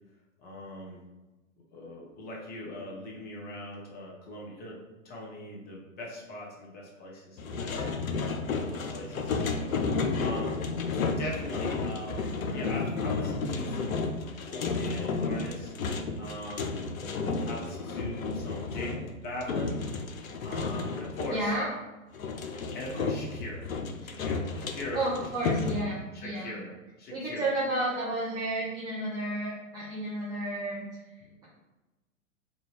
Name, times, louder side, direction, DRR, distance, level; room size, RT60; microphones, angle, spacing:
voice 1, 0.4-1.0 1.7-4.8 5.0-7.8 8.4-9.8 10.2-10.6 11.2-14.0 14.4-15.7 16.2-16.8 17.4-19.8 20.4-21.5 22.7-23.7 24.0-25.0 25.4-25.6 26.2-26.7 27.0-27.5, left 1 dB, 25° left, -3 dB, 1.0 m, -40 dB
sound 1, 7.4-21.4 22.1-25.8, left 4 dB, 90° left, 0.5 m, -32 dB
voice 2, 21.3-21.6 24.9-26.6 27.1-31.0, right 1 dB, 10° right, -8 dB, 0.4 m, -32 dB
3.8 x 2.2 x 3.2 m, 1.1 s
figure-of-eight pair, 110°, 40 cm